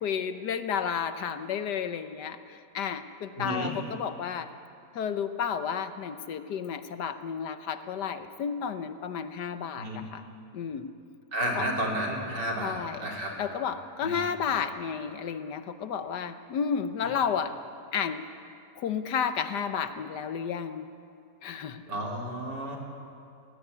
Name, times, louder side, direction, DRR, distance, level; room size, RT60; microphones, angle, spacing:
voice 1, 0.0-4.5 4.9-10.2 10.5-10.9 11.5-11.6 12.6-13.1 13.4-17.5 17.9-18.2 18.8-20.8 21.4-21.8, left 7 dB, 75° left, 10 dB, 1.5 m, -32 dB
voice 2, 3.4-3.7 9.8-10.0 11.3-13.3 14.0-14.3 17.0-17.1 21.9-22.8, right 1 dB, 75° right, -1 dB, 4.2 m, -32 dB
20.5 x 15.5 x 9.6 m, 2.5 s
omnidirectional pair, 1.8 m